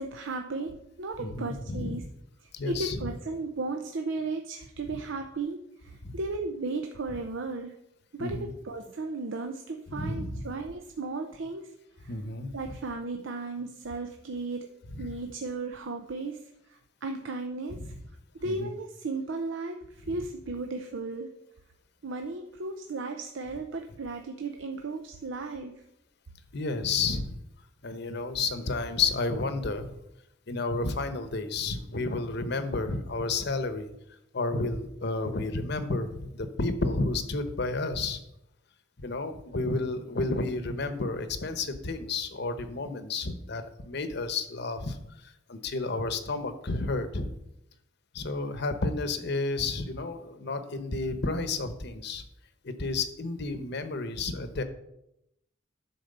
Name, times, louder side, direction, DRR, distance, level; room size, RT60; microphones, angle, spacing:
voice 1, 0.0-2.0 2.4-7.7 8.1-11.7 12.0-12.1 12.5-14.7 15.0-16.4 16.7-17.9 18.3-21.3 22.0-25.7, right 3 dB, 80° right, 5 dB, 0.7 m, -35 dB
voice 2, 1.2-2.0 2.5-3.1 6.0-6.2 8.2-8.5 9.9-10.5 12.1-12.8 14.9-15.1 17.8-18.0 18.4-18.7 26.5-27.4 27.8-30.0 30.5-33.9 34.3-38.2 39.0-47.3 48.1-52.2 52.6-54.6, left 3 dB, 60° left, 10 dB, 0.9 m, -31 dB
10.5 x 4.3 x 6.6 m, 0.84 s
head